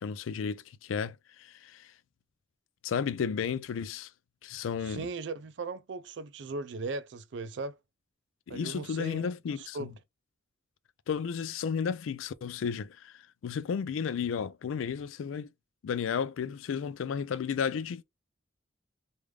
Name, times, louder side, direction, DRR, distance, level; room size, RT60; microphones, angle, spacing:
voice 1, 0.0-1.9 2.8-4.1 4.4-5.1 8.5-9.9 11.1-15.5 15.8-18.0, left 6 dB, 85° left, 0.3 m, -33 dB
voice 2, 4.8-7.8 8.5-9.9, right 3 dB, 60° right, 0.4 m, -38 dB
3.3 x 2.5 x 3.1 m
head